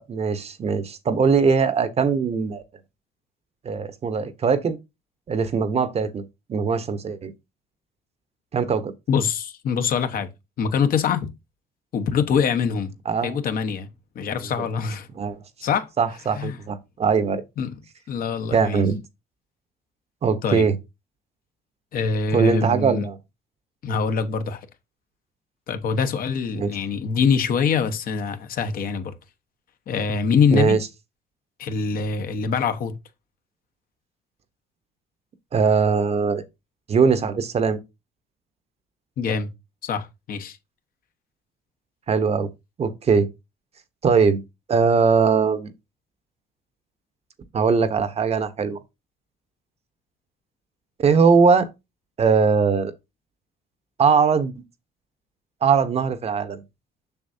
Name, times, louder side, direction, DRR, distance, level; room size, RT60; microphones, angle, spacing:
voice 1, 0.0-2.6 3.6-4.8 5.3-6.2 6.5-7.3 8.5-8.9 13.0-13.4 15.2-15.4 16.0-17.4 18.5-19.0 20.2-20.8 22.3-23.2 26.5-26.7 30.5-30.9 35.5-36.4 36.9-37.8 42.1-42.5 42.8-43.3 44.0-44.4 44.7-45.7 47.5-48.8 51.0-51.7 52.2-52.9 54.0-54.5 55.6-56.6, right 5 dB, 40° right, 1.0 m, -20 dB
voice 2, 9.1-10.3 10.6-11.3 11.9-12.9 13.2-13.9 14.1-15.1 15.6-15.9 16.4-16.5 17.6-17.7 18.1-18.8 20.4-20.7 21.9-23.0 23.8-24.7 25.7-29.1 29.9-30.8 31.6-32.9 39.2-39.5 39.8-40.6, left 6 dB, 60° left, 1.1 m, -24 dB
7.0 x 6.2 x 2.7 m
cardioid pair, 110°, 17 cm